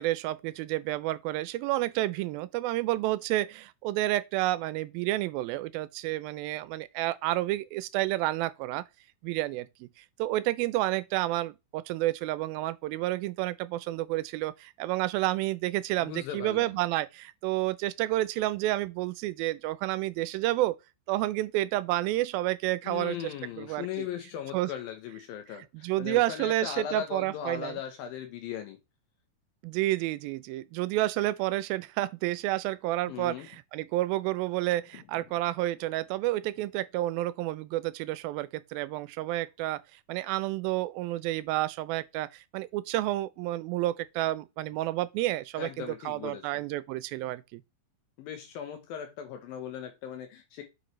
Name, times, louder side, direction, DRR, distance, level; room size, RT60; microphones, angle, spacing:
voice 1, 0.0-8.8 9.2-20.8 21.1-24.1 24.5-24.7 25.7-27.8 29.6-39.8 40.1-47.6, right 16 dB, 85° right, 2.3 m, -30 dB
voice 2, 16.0-16.8 22.8-28.8 33.1-33.5 45.5-46.6 48.2-50.6, left 9 dB, 75° left, 2.6 m, -38 dB
7.8 x 5.6 x 3.1 m
omnidirectional pair, 4.3 m